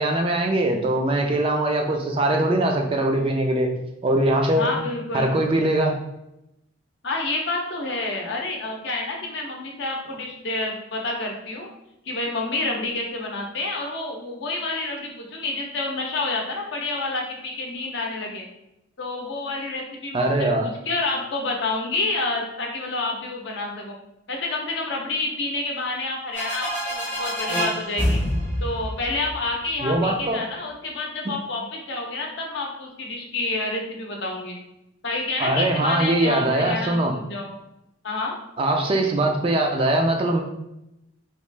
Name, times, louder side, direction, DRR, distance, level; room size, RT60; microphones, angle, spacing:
voice 1, 0.0-3.7 4.0-4.7 5.1-6.0 20.1-20.7 29.8-30.4 31.2-31.4 35.4-37.1 38.6-40.4, right 1 dB, 25° right, 2 dB, 0.3 m, -21 dB
voice 2, 4.5-5.4 7.0-11.7 12.1-18.5 19.0-24.0 24.3-28.2 28.6-34.6 35.0-37.5 38.0-38.4, left 2 dB, 60° left, 1 dB, 0.6 m, -29 dB
sound 1, 26.3-30.0, equal, 10° left, 0.6 m, -27 dB
2.9 x 2.3 x 3.3 m, 0.86 s
head